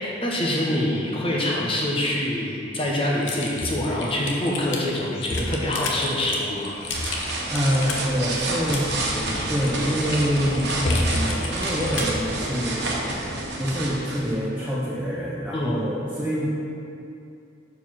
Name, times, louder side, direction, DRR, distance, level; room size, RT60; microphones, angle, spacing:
voice 1, 0.0-6.7 15.5-15.8, left 1 dB, 30° left, -3 dB, 1.2 m, -25 dB
Typing, 3.2-12.2, left 2 dB, 75° left, 0.9 m, -30 dB
sound 1, 6.6-14.3, right 2 dB, 60° right, 1.1 m, -29 dB
voice 2, 7.1-13.0 13.6-16.5, equal, 5° right, -8 dB, 0.8 m, -26 dB
6.9 x 4.7 x 5.8 m, 2.6 s
head